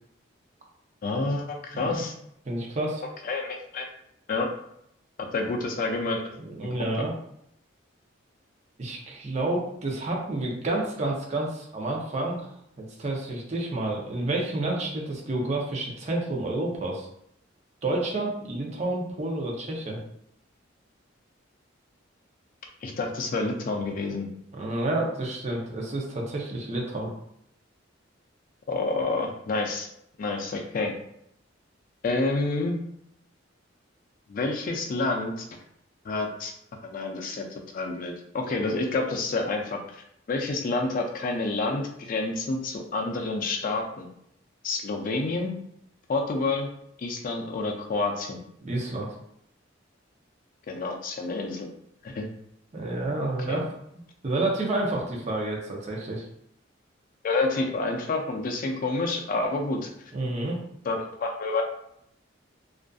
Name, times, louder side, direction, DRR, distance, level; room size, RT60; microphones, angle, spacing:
voice 1, 1.0-2.1 3.2-3.9 4.3-4.5 5.3-6.3 22.8-24.3 28.7-29.9 30.2-30.9 32.0-32.8 34.3-35.5 36.0-36.5 36.8-37.4 37.7-44.1 44.6-45.5 46.1-46.7 47.0-48.4 50.7-51.7 52.0-52.3 53.5-53.6 57.2-59.9 60.8-61.6, left 3 dB, 45° left, 2 dB, 0.3 m, -28 dB
voice 2, 2.4-3.0 6.4-7.1 8.8-12.5 12.8-17.1 17.8-20.0 24.5-27.1 48.6-49.2 52.7-53.6 54.2-56.3 60.1-60.6, right 2 dB, 35° right, -2 dB, 0.5 m, -29 dB
2.4 x 2.4 x 2.3 m, 0.74 s
head